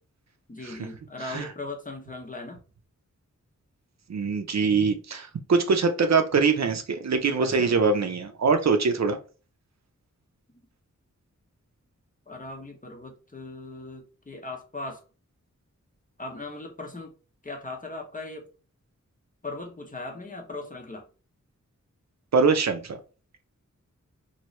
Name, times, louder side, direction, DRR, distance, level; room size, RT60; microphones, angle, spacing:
voice 1, 0.5-2.6 7.4-7.7 10.5-10.7 12.3-15.0 16.2-17.1 17.4-18.5 19.4-21.0, left 2 dB, 25° left, 0.8 m, -38 dB
voice 2, 4.1-9.2 22.3-23.0, right 4 dB, 60° right, 0.5 m, -23 dB
3.0 x 2.7 x 3.1 m
wide cardioid pair, 95°, 31 cm